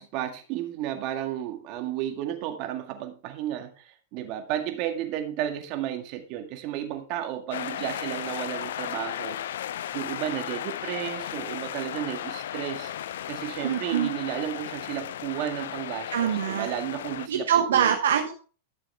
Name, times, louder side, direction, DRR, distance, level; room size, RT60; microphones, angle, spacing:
voice 1, 0.0-9.5 9.9-12.9 13.3-17.9, right 11 dB, 50° right, 5 dB, 1.9 m, -33 dB
sound 1, 7.5-17.3, left 11 dB, 70° left, 0.4 m, -35 dB
voice 2, 13.6-14.1 16.1-16.7 17.3-18.3, right 9 dB, 75° right, 4 dB, 1.0 m, -24 dB
13.0 x 6.9 x 3.3 m, 0.37 s
hypercardioid pair, 105°, 0 cm